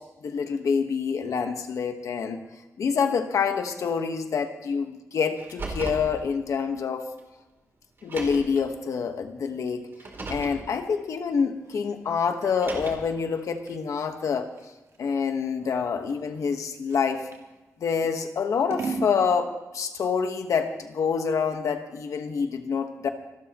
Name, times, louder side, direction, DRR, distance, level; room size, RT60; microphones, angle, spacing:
voice 1, 0.2-2.4 2.8-7.0 8.0-9.9 10.3-14.5 15.0-17.3 17.8-23.1, left 6 dB, 90° left, 6 dB, 1.3 m, -27 dB
Car, 5.4-6.1 7.2-7.3 8.0-8.6 9.9-10.6 12.4-13.2, right 2 dB, 45° right, 3.2 m, -36 dB
Scissors, 11.3-17.5 18.0-19.2, right 4 dB, 70° right, 2.1 m, -39 dB
27.0 x 13.0 x 3.0 m, 1.1 s
wide cardioid pair, 155°, 5 cm